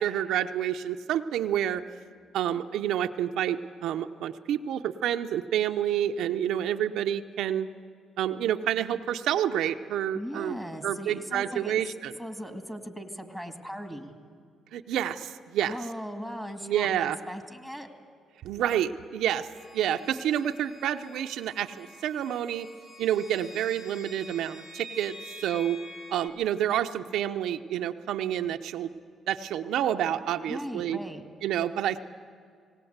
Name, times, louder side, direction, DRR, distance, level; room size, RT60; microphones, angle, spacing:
voice 1, 0.0-1.8 2.3-7.7 8.2-10.6 10.8-12.1 14.7-15.7 16.6-17.2 18.4-19.5 19.7-22.7 23.0-25.8 26.1-28.9 29.3-31.0 31.4-32.1, right 10 dB, 80° right, 6 dB, 0.6 m, -28 dB
voice 2, 10.1-11.9 12.2-14.1 15.6-17.9 30.5-31.2, equal, 5° left, 4 dB, 2.1 m, -38 dB
sound 1, 19.6-26.3, left 1 dB, 60° left, 3.7 m, -47 dB
19.0 x 17.5 x 8.0 m, 2.2 s
cardioid pair, 90°, 0 cm